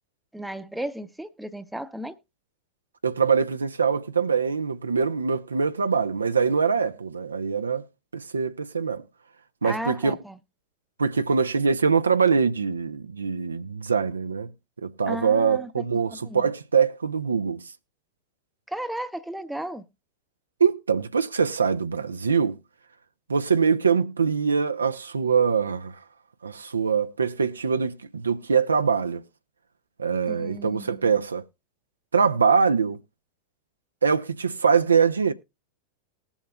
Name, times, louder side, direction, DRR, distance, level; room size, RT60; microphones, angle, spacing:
voice 1, 0.3-2.2 9.6-10.4 15.1-15.8 16.2-16.5 18.7-19.8 30.3-31.1, right 1 dB, 5° right, 0.7 m, -34 dB
voice 2, 3.0-7.9 8.1-9.0 9.6-10.2 11.0-14.5 14.8-17.6 20.6-22.6 23.3-26.0 26.4-29.2 30.0-31.4 32.1-33.0 34.0-35.3, right 6 dB, 75° right, 0.6 m, -23 dB
19.5 x 7.1 x 2.2 m
figure-of-eight pair, 90°, 0 cm